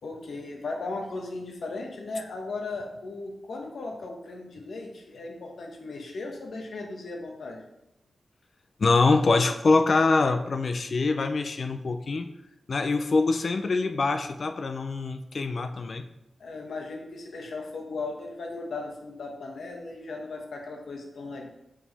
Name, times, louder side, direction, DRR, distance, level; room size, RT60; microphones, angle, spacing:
voice 1, 0.0-7.7 16.4-21.5, left 3 dB, 80° left, 1 dB, 1.1 m, -37 dB
voice 2, 8.8-12.3 12.7-16.0, left 3 dB, 50° left, 8 dB, 0.4 m, -24 dB
5.5 x 4.7 x 4.1 m, 0.86 s
wide cardioid pair, 150°, 0 cm